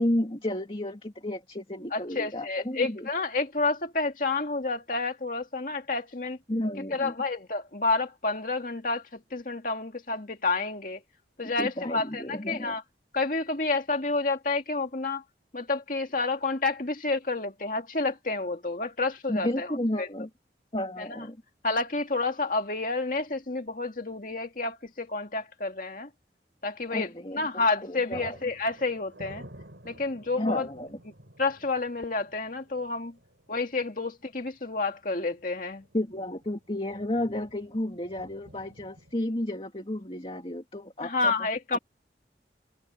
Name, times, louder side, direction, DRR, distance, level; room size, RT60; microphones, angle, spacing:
voice 1, 0.0-3.1 6.5-7.1 11.6-12.8 19.3-20.3 20.7-21.4 26.9-28.4 30.4-31.0 35.9-41.3, left 1 dB, 30° left, 2.2 m, -32 dB
voice 2, 1.9-6.4 6.9-11.0 11.4-12.8 13.1-15.2 15.5-20.1 21.0-21.3 21.6-26.1 26.6-29.5 29.8-30.7 31.4-33.2 33.5-35.9 41.0-41.8, left 3 dB, 50° left, 2.1 m, -29 dB
sound 1, 22.9-23.3 23.5-23.6 27.3-27.5 27.8-39.2, right 1 dB, 75° right, 6.3 m, -52 dB
head